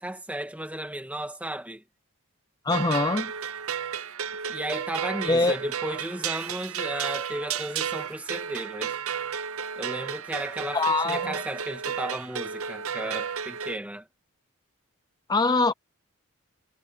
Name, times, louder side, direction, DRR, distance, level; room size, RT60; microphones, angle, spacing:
voice 1, 0.0-1.8 4.5-9.0 9.8-14.1, right 1 dB, 5° right, 1.8 m, -34 dB
voice 2, 2.6-3.3 5.3-5.6 10.7-11.4 15.3-15.7, left 3 dB, 20° left, 0.5 m, -23 dB
sound 1, 2.7-13.8, right 8 dB, 80° right, 0.9 m, -33 dB
head